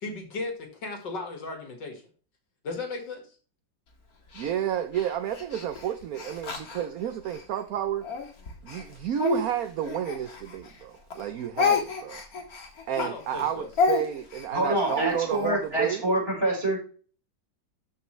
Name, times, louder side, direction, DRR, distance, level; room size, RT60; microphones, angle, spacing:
voice 1, 0.0-2.0 2.6-3.3 13.0-13.7, left 3 dB, 65° left, 2.4 m, -35 dB
Speech, 4.3-7.4 8.0-10.8 11.1-15.5, left 5 dB, 50° left, 2.1 m, -31 dB
voice 2, 4.3-8.1 8.6-12.2 12.9-16.1, right 10 dB, 65° right, 1.0 m, -31 dB
voice 3, 14.5-16.8, right 1 dB, 30° right, 5.2 m, -26 dB
13.0 x 5.7 x 3.2 m
omnidirectional pair, 2.0 m